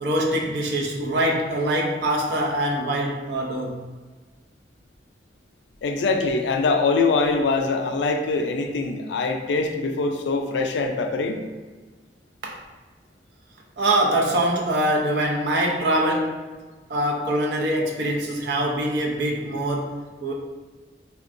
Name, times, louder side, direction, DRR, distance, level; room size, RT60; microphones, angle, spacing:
voice 1, 0.0-3.8 12.4-12.6 13.8-16.4 16.9-20.3, right 1 dB, 80° right, -1 dB, 0.5 m, -24 dB
voice 2, 5.8-11.4, left 3 dB, 90° left, 5 dB, 0.4 m, -23 dB
3.5 x 2.3 x 2.5 m, 1.3 s
head